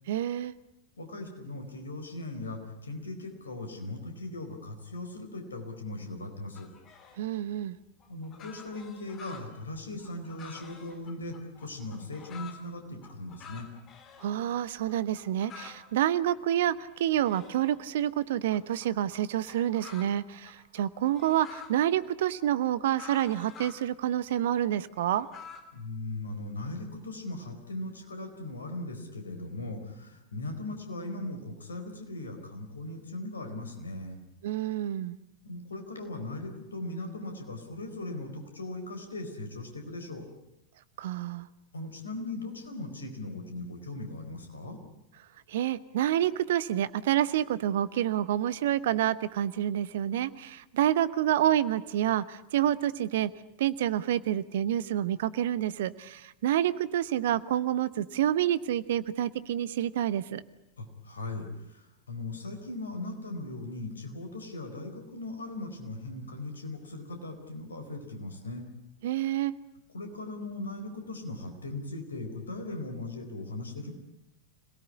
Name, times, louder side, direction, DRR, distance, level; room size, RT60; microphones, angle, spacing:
voice 1, 0.1-0.5 7.2-7.8 14.2-25.3 34.4-35.2 41.0-41.5 45.5-53.3 53.6-60.4 69.0-69.5, right 11 dB, 55° right, 18 dB, 1.0 m, -28 dB
voice 2, 1.0-6.7 8.1-13.7 25.7-34.2 35.4-40.2 41.7-44.8 60.8-68.6 69.9-73.9, left 2 dB, 70° left, 5 dB, 4.3 m, -39 dB
sound 1, 6.6-7.3 8.0-12.6 13.0-14.3 14.5-14.6 14.9-15.9 16.3-18.0 18.5-21.8 22.2-23.8 24.3-25.6, left 6 dB, 30° left, 3.2 m, -49 dB
26.0 x 18.0 x 9.8 m, 0.88 s
figure-of-eight pair, 90°, 0 cm